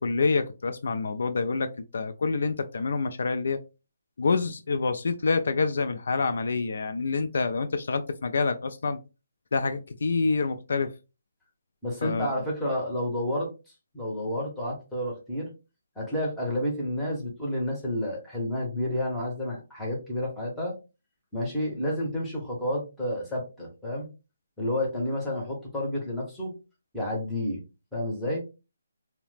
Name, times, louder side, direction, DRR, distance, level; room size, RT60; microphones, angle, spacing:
voice 1, 0.0-3.6 4.2-9.0 9.5-10.9 12.0-12.4, left 4 dB, 60° left, 9 dB, 0.3 m, -27 dB
voice 2, 11.8-13.5 13.9-15.5 16.0-20.7 21.3-24.1 24.6-26.5 26.9-27.6 27.9-28.4, left 1 dB, 5° left, -4 dB, 0.7 m, -30 dB
2.8 x 2.0 x 3.2 m, 0.29 s
hypercardioid pair, 170°, 0 cm